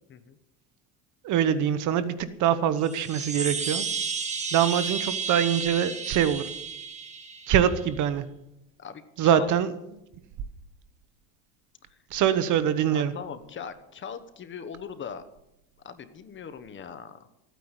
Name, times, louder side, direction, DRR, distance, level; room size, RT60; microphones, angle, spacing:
voice 1, 1.2-3.9 4.5-6.4 7.5-8.3 9.2-9.7 12.1-13.1, right 9 dB, 50° right, 13 dB, 1.1 m, -24 dB
sound 1, 2.8-7.8, right 5 dB, 20° right, 1.7 m, -32 dB
voice 2, 8.8-9.5 12.9-15.2 15.8-17.2, left 7 dB, 30° left, 11 dB, 1.1 m, -40 dB
14.0 x 9.4 x 8.1 m, 0.85 s
cardioid pair, 135°, 37 cm